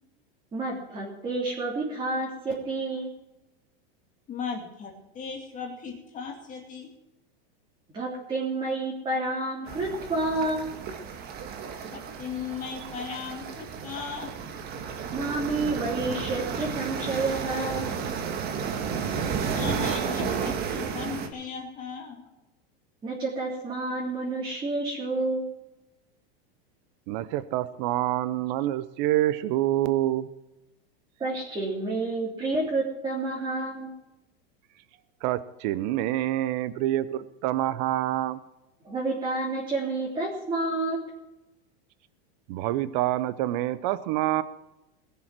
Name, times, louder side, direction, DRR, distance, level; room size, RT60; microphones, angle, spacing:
voice 1, 0.5-3.1 7.9-10.7 15.1-18.0 23.0-25.5 31.2-33.9 38.8-41.0, right 2 dB, 15° right, -5 dB, 3.4 m, -29 dB
voice 2, 4.3-6.9 11.9-14.3 19.5-22.2, left 6 dB, 25° left, 1 dB, 2.5 m, -37 dB
sound 1, 9.7-21.3, right 6 dB, 30° right, 1.6 m, -32 dB
voice 3, 27.1-30.3 35.2-38.4 42.5-44.4, right 14 dB, 45° right, 14 dB, 0.7 m, -27 dB
20.0 x 7.1 x 7.5 m, 0.96 s
supercardioid pair, 155°, 30 cm